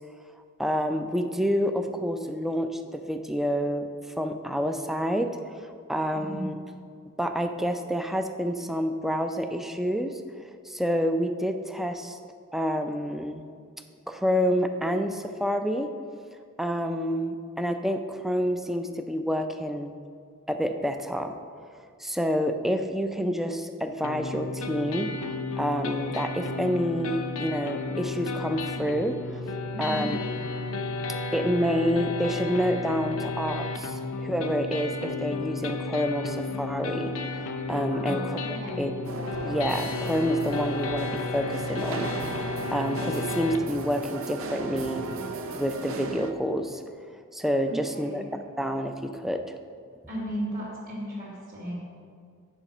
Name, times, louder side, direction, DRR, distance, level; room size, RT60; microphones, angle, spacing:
voice 1, 0.6-3.9 4.2-5.3 5.6-6.5 7.2-10.1 10.7-12.2 12.5-13.4 14.1-15.9 16.6-19.9 20.5-21.4 22.0-25.1 25.6-29.4 29.8-30.2 31.3-37.4 37.7-38.4 38.8-39.1 39.4-42.1 42.7-45.1 45.5-46.8 47.3-48.2 48.6-49.4, equal, ahead, 6 dB, 0.4 m, -28 dB
voice 2, 6.1-6.5 29.7-30.1 37.9-38.9 47.7-48.3 50.1-51.7, right 1 dB, 40° right, -9 dB, 2.4 m, -35 dB
sound 1, 24.0-43.6, left 3 dB, 85° left, 0.7 m, -33 dB
sound 2, 39.0-46.3, right 2 dB, 70° right, 0.6 m, -36 dB
10.0 x 5.0 x 6.6 m, 2.2 s
head